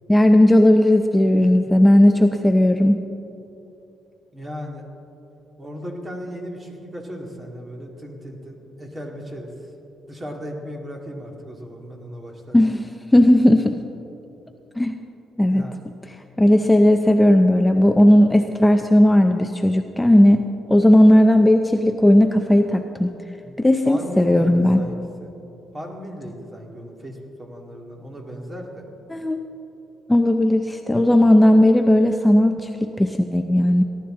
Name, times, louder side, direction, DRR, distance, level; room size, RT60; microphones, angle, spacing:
voice 1, 0.1-3.0 12.5-12.9 13.1-13.7 14.8-15.0 15.4-15.6 16.4-20.4 20.7-23.1 23.6-24.8 29.1-29.4 30.1-33.8, left 1 dB, 10° left, 5 dB, 0.6 m, -15 dB
voice 2, 4.3-4.8 5.6-9.5 10.1-12.6 15.5-15.7 23.4-23.6 23.8-25.3 25.7-28.9 30.8-31.1, equal, 25° right, 1 dB, 2.3 m, -36 dB
18.0 x 12.0 x 3.8 m, 2.8 s
cardioid pair, 90°, 0 cm